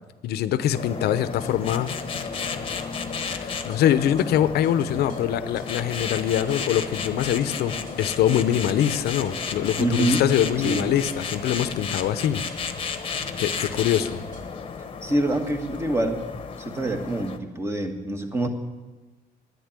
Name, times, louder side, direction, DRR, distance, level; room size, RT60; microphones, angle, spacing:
voice 1, 0.2-1.9 3.3-12.5 13.4-14.2, left 10 dB, 70° left, 14 dB, 0.8 m, -24 dB
sound 1, 0.7-17.4, left 5 dB, 30° left, 1.1 m, -33 dB
sound 2, 1.2-14.4, right 1 dB, 75° right, 4.7 m, -45 dB
voice 2, 9.8-10.2 10.6-10.9 15.0-16.2 16.6-18.5, right 1 dB, 15° right, 5 dB, 1.6 m, -25 dB
10.5 x 9.8 x 8.9 m, 1.2 s
cardioid pair, 110°, 17 cm